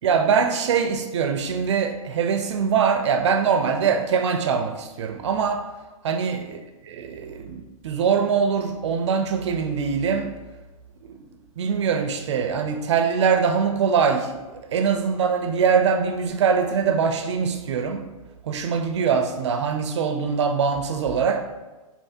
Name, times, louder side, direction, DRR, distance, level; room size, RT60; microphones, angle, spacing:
voice 1, 0.0-5.7 6.0-6.6 6.9-10.3 11.0-11.2 11.6-18.1 18.4-21.4, right 6 dB, 50° right, 7 dB, 0.4 m, -23 dB
4.4 x 3.3 x 2.7 m, 1.2 s
hypercardioid pair, 160°, 19 cm